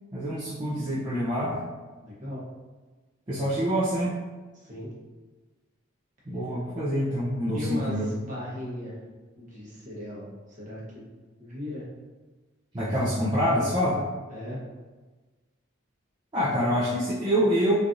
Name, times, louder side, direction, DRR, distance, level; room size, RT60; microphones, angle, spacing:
voice 1, 0.1-1.6 3.3-4.2 6.3-8.1 12.7-14.0 16.3-17.7, equal, 20° right, -10 dB, 0.5 m, -26 dB
voice 2, 2.0-2.5 4.5-4.9 7.5-9.0 9.4-11.0 11.4-11.9 14.3-14.6, left 1 dB, 35° right, -6 dB, 0.9 m, -37 dB
3.2 x 2.4 x 2.5 m, 1.3 s
head